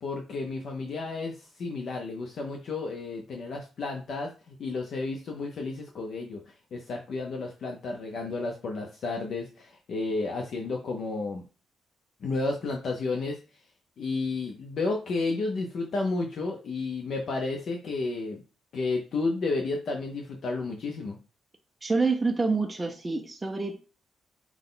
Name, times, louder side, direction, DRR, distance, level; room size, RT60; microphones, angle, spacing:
voice 1, 0.0-6.4 6.7-11.4 12.2-13.4 14.0-18.4 18.7-21.2, left 3 dB, 55° left, 2 dB, 0.7 m, -32 dB
voice 2, 21.8-23.8, right 3 dB, 15° right, 4 dB, 0.4 m, -27 dB
5.9 x 2.2 x 3.8 m, 0.35 s
cardioid pair, 145°, 0 cm